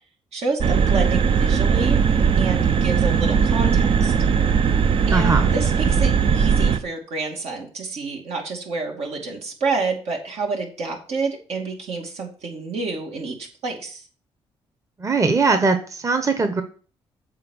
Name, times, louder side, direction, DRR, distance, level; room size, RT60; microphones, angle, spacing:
voice 1, 0.3-2.0 2.4-4.1 5.1-13.4 13.6-14.1, right 3 dB, 75° right, 1 dB, 2.3 m, -29 dB
sound 1, 0.6-6.8, right 6 dB, 55° right, 0.6 m, -19 dB
voice 2, 5.1-5.5 15.0-16.6, right 4 dB, 30° right, 7 dB, 1.0 m, -20 dB
7.5 x 4.2 x 6.3 m, 0.40 s
cardioid pair, 75°, 11 cm